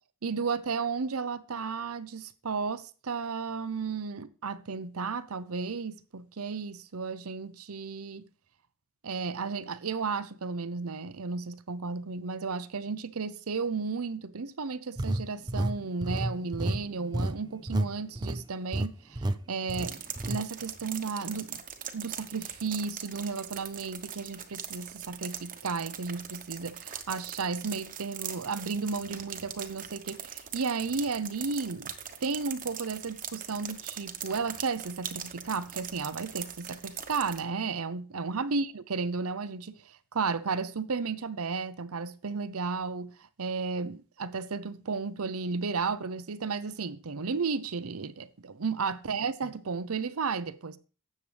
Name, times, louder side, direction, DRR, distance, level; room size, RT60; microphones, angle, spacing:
voice 1, 0.2-8.2 9.0-20.0 20.2-21.6 21.9-31.9 32.2-43.1 43.4-50.8, right 4 dB, 85° right, 0.8 m, -33 dB
sound 1, 15.0-17.9 18.2-18.4 18.7-18.9 19.2-19.4 19.7-20.4, right 1 dB, 20° right, 0.5 m, -30 dB
sound 2, 19.7-37.4, right 8 dB, 40° right, 1.1 m, -41 dB
13.0 x 8.5 x 3.4 m
head